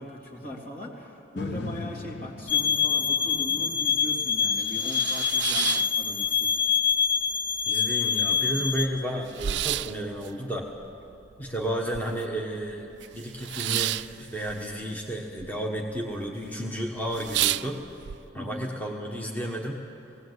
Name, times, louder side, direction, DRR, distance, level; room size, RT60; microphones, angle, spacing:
voice 1, 0.0-6.6 18.3-18.7, equal, 55° left, -2 dB, 3.2 m, -39 dB
sound 1, 1.4-9.5 10.0-10.1, left 3 dB, 80° left, 0.7 m, -42 dB
sound 2, 2.5-8.9, left 7 dB, 30° left, 1.1 m, -25 dB
sound 3, 3.4-3.5 3.8-3.9 4.4-6.6 6.9-7.6 8.0-8.1 8.3-12.4 12.7-15.5 15.7-16.3 16.7-16.8 17.1-18.2, right 14 dB, 75° right, 0.4 m, -32 dB
voice 2, 7.7-10.7 11.4-17.8 18.3-19.8, equal, 10° left, 0 dB, 1.2 m, -32 dB
18.5 x 17.5 x 8.1 m, 3.0 s
head